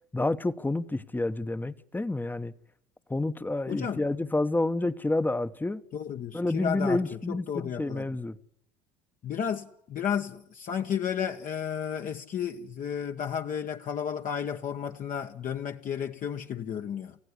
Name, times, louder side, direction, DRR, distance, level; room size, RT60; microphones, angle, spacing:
voice 1, 0.1-2.5 3.1-5.8 6.3-8.4, left 2 dB, 10° left, 1.1 m, -29 dB
voice 2, 3.7-4.0 5.9-8.1 9.2-17.2, left 8 dB, 40° left, 1.2 m, -33 dB
27.5 x 15.5 x 9.9 m
hypercardioid pair, 80°, 20 cm